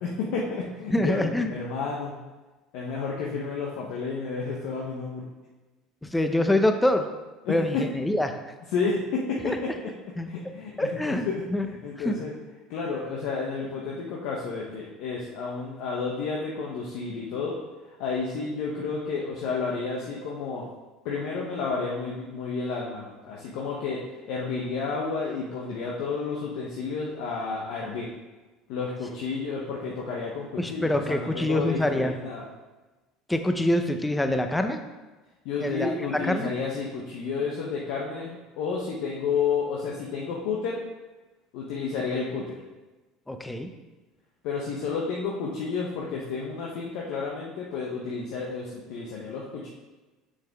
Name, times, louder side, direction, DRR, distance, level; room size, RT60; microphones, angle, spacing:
voice 1, 0.0-1.2 1.5-2.1 2.7-5.3 7.4-7.8 8.7-9.9 10.2-11.3 11.8-12.3 12.7-17.6 18.0-20.6 21.0-24.0 24.3-28.1 28.7-32.4 35.4-40.8 41.5-42.6 44.4-49.7, left 4 dB, 70° left, -3 dB, 1.0 m, -31 dB
voice 2, 0.9-1.5 6.0-7.1 7.5-8.4 9.4-9.6 10.2-10.3 10.8-11.7 12.0-12.1 30.6-32.2 33.3-34.8 35.6-36.5 43.3-43.7, left 1 dB, 10° left, 6 dB, 0.7 m, -25 dB
6.7 x 6.4 x 3.6 m, 1.2 s
supercardioid pair, 90°, 0 cm